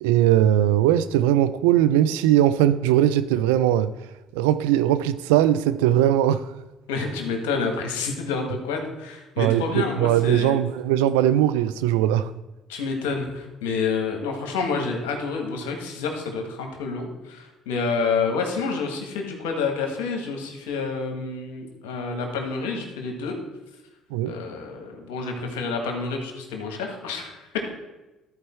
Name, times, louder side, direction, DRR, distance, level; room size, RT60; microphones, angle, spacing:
voice 1, 0.0-3.9 4.4-6.5 9.4-12.3 24.1-24.4, right 12 dB, 90° right, 0.3 m, -20 dB
voice 2, 6.9-10.6 12.7-23.4 24.2-27.7, left 4 dB, 90° left, 1.5 m, -28 dB
13.5 x 4.5 x 4.4 m
supercardioid pair, 70°, 0 cm